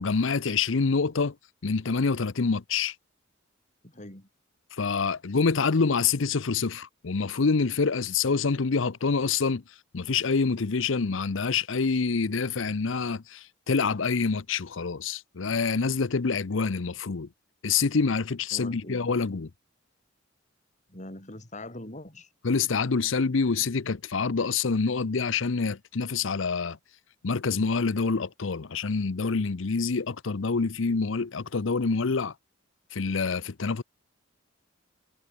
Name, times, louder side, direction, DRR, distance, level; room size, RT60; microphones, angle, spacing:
voice 1, 0.0-1.4 1.6-2.9 4.8-9.6 9.9-17.3 17.6-19.5 22.4-26.8 27.2-32.3 32.9-33.8, left 4 dB, 70° left, 0.7 m, -26 dB
voice 2, 3.8-4.3 18.5-19.1 20.9-22.3, left 1 dB, 35° left, 5.2 m, -42 dB
head